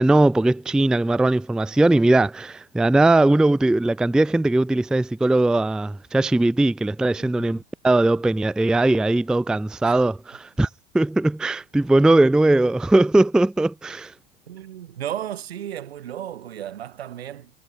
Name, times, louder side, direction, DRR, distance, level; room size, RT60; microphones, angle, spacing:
voice 1, 0.0-10.7 10.9-14.1, right 2 dB, ahead, 0.5 m, -19 dB
voice 2, 14.5-17.5, right 11 dB, 75° right, 5.0 m, -34 dB
hypercardioid pair, 100°, 31 cm